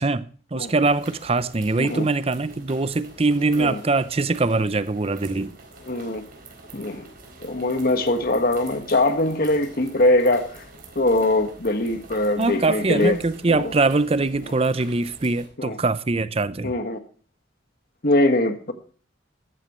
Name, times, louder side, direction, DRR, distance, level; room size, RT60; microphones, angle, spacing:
voice 1, 0.0-5.5 12.4-16.8, right 3 dB, 30° right, 0.6 m, -23 dB
sound 1, 0.6-15.5, right 2 dB, 50° right, 4.2 m, -46 dB
voice 2, 5.9-6.2 6.7-7.1 7.4-10.6 10.9-13.2 13.5-13.7 15.6-15.8 16.6-17.0 18.0-18.7, left 2 dB, 50° left, 1.7 m, -22 dB
14.5 x 14.0 x 3.1 m
head